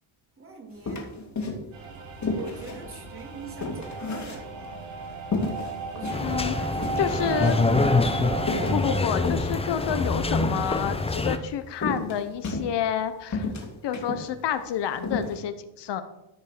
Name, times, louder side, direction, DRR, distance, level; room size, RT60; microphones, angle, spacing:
voice 1, 0.4-4.8 5.9-8.2, right 5 dB, 25° right, 1 dB, 3.1 m, -44 dB
sound 1, 0.8-1.9 2.2-4.8 5.3-6.2 6.5-6.6 6.8-7.8 8.4-11.0 11.8-13.0 13.3-14.3 14.6-14.7 15.0-15.3, left 3 dB, 35° left, 2.8 m, -32 dB
sound 2, 1.7-9.0, right 4 dB, 60° right, 5.1 m, -34 dB
sound 3, 6.1-11.4, left 3 dB, 10° left, 0.8 m, -25 dB
voice 2, 6.2-6.5 7.0-7.6 8.7-13.5 13.8-16.0, left 9 dB, 60° left, 10 dB, 1.0 m, -29 dB
14.5 x 5.4 x 6.8 m, 0.91 s
cardioid pair, 130°, 48 cm